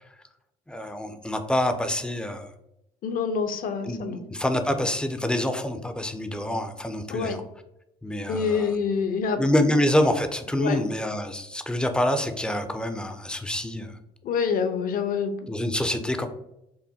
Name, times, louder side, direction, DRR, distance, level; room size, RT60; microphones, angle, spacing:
voice 1, 0.7-2.5 3.8-7.4 8.0-8.8 9.4-14.0 15.5-16.3, left 1 dB, 5° left, 8 dB, 0.4 m, -26 dB
voice 2, 3.0-4.2 7.1-7.4 8.3-9.8 10.6-10.8 14.2-15.3, left 6 dB, 55° left, 8 dB, 0.6 m, -27 dB
5.5 x 2.2 x 2.6 m, 0.85 s
cardioid pair, 110°, 17 cm